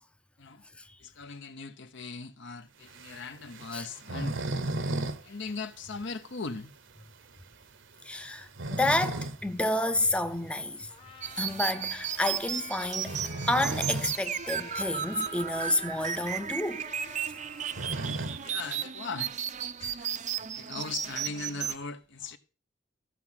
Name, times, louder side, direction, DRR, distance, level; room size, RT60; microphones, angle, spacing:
voice 1, 1.0-4.4 5.2-6.7 18.0-19.4 19.8-20.3 20.5-22.4, left 4 dB, 65° left, 1.0 m, -39 dB
sound 1, 2.9-5.2 5.5-5.6 6.0-6.1 6.6-6.7 8.3-9.4 9.8-10.0 11.5-11.7 12.9-14.2 14.6-14.7 14.9-15.0 15.7-15.8 16.1-18.7, right 2 dB, 70° right, 1.0 m, -35 dB
voice 2, 8.0-10.9 11.4-16.8, left 1 dB, 5° left, 0.6 m, -30 dB
Trumpet, 10.9-18.3, left 4 dB, 30° left, 1.1 m, -50 dB
sound 2, 11.2-21.7, right 8 dB, 40° right, 0.6 m, -35 dB
14.5 x 6.1 x 5.8 m
head